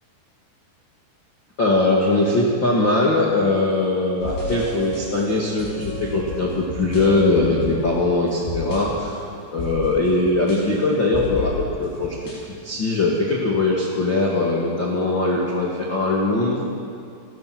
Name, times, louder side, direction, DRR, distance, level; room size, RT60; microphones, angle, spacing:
voice 1, 1.6-9.1 9.5-12.1 12.6-16.6, left 2 dB, 35° left, -4 dB, 2.1 m, -21 dB
sound 1, 4.2-12.5, left 1 dB, 75° left, 8.3 m, -32 dB
29.5 x 16.5 x 6.2 m, 2.4 s
omnidirectional pair, 5.2 m